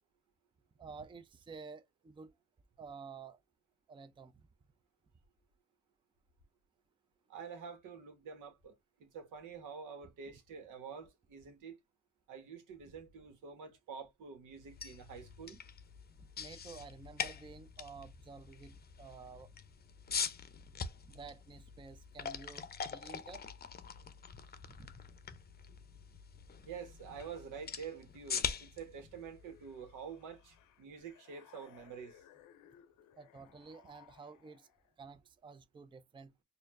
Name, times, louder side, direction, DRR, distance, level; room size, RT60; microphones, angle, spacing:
voice 1, 0.8-2.3 2.8-3.4 3.9-4.3 16.2-19.5 21.1-22.6 22.9-23.4 24.7-24.9 33.2-34.7 35.0-36.3, right 5 dB, 15° right, 0.5 m, -51 dB
voice 2, 7.3-11.8 12.3-15.6 20.3-20.4 26.6-32.2, right 6 dB, 85° right, 1.4 m, -48 dB
sound 1, 14.6-30.5, left 6 dB, 30° left, 0.6 m, -44 dB
sound 2, 29.1-35.0, left 10 dB, 85° left, 0.6 m, -63 dB
4.3 x 2.6 x 2.5 m
cardioid pair, 90°, 30 cm